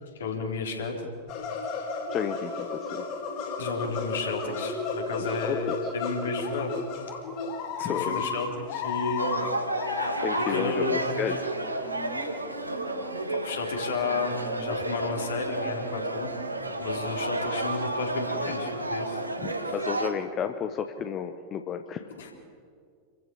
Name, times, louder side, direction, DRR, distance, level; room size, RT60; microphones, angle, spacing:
voice 1, 0.0-1.1 3.6-6.8 7.8-9.4 10.5-11.5 13.3-16.3 16.8-19.2 19.6-19.8 22.2-22.3, left 4 dB, 65° left, 1 dB, 3.9 m, -32 dB
sound 1, 1.3-10.8 11.1-11.2 11.6-11.7 12.2-12.3 12.6-12.7 13.2-13.3, left 4 dB, 45° left, 4.7 m, -33 dB
voice 2, 2.1-3.0 5.4-5.6 5.8-5.9 7.8-8.2 10.2-11.5 19.4-22.1, left 8 dB, 30° left, 8 dB, 1.1 m, -32 dB
sound 2, 9.2-20.1, right 2 dB, 85° right, 1.7 m, -31 dB
sound 3, 11.6-13.5 14.1-16.5 16.8-16.9, equal, 5° left, 2.3 m, -46 dB
28.0 x 15.5 x 7.1 m, 2.3 s
figure-of-eight pair, 90°, 0 cm